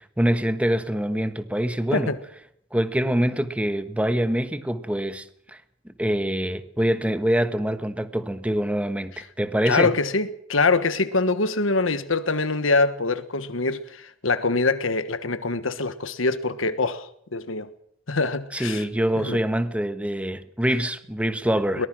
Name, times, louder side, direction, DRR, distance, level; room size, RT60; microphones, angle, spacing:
voice 1, 0.0-2.1 2.7-5.6 5.8-9.9 18.5-21.9, equal, 5° right, 1.2 m, -25 dB
voice 2, 9.6-17.7 18.1-18.8 19.2-19.4 21.8-21.9, left 3 dB, 80° left, 1.4 m, -24 dB
22.5 x 19.5 x 6.2 m
head